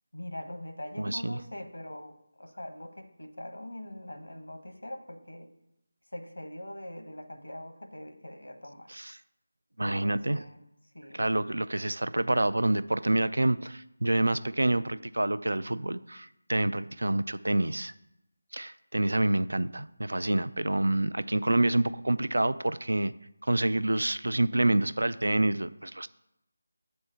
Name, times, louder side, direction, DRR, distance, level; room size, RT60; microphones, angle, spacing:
voice 1, 0.1-5.5 6.1-8.9 9.8-10.6 10.9-11.2, left 1 dB, 80° left, 6 dB, 1.1 m, -42 dB
voice 2, 1.0-1.4 8.9-9.1 9.8-10.4 11.1-17.9 18.5-23.1 23.5-26.1, right 1 dB, 70° right, 15 dB, 0.3 m, -27 dB
7.4 x 4.4 x 6.8 m, 0.86 s
figure-of-eight pair, 160°, 0 cm